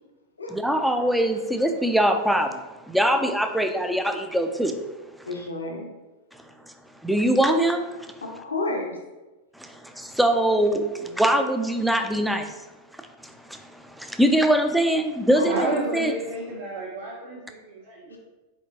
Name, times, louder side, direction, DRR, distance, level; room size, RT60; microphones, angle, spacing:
voice 1, 0.5-4.8 7.0-8.1 9.5-12.6 13.2-16.1, right 1 dB, ahead, 6 dB, 0.4 m, -23 dB
voice 2, 5.3-5.9 8.2-9.0 15.3-15.9, left 2 dB, 75° left, 1 dB, 0.7 m, -31 dB
voice 3, 15.5-18.2, right 2 dB, 55° right, -6 dB, 1.0 m, -31 dB
4.4 x 4.2 x 2.8 m, 1.1 s
figure-of-eight pair, 90°, 0 cm